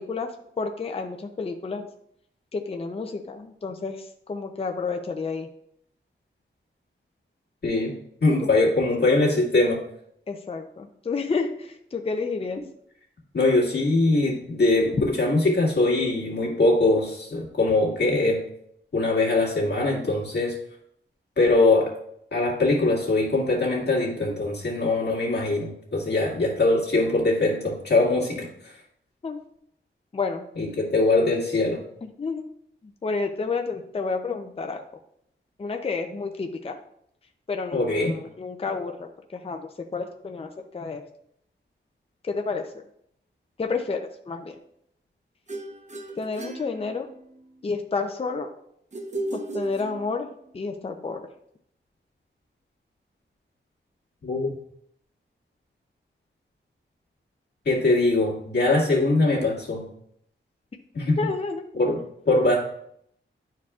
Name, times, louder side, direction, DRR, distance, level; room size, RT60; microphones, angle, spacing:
voice 1, 0.0-1.9 2.5-5.5 10.3-12.6 29.2-29.4 30.1-30.4 32.2-32.4 32.8-34.8 35.6-36.8 37.5-41.0 42.2-42.6 43.6-44.6 46.2-47.1 47.6-48.5 49.3-50.3 50.5-51.3 61.2-61.6, left 4 dB, 30° left, 4 dB, 0.5 m, -30 dB
voice 2, 7.6-7.9 8.2-9.8 13.3-18.4 18.9-20.6 21.4-21.9 22.3-28.7 30.6-31.8 37.7-38.1 54.2-54.5 57.7-59.9 60.9-61.2 61.7-62.6, left 2 dB, 55° left, -3 dB, 1.9 m, -22 dB
sound 1, 45.5-47.4 48.9-50.4, right 1 dB, 35° right, 0.9 m, -35 dB
11.0 x 4.6 x 2.4 m, 0.71 s
wide cardioid pair, 115°, 20 cm